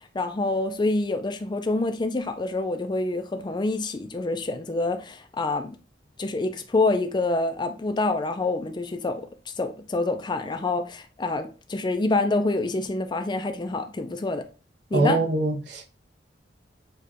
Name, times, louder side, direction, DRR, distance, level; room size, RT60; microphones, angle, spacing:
voice 1, 0.1-5.8 6.2-9.3 9.6-14.4 14.9-15.2, left 2 dB, 25° left, 0.4 m, -26 dB
voice 2, 14.9-15.8, right 2 dB, 65° right, 0.8 m, -23 dB
5.1 x 2.3 x 4.1 m
head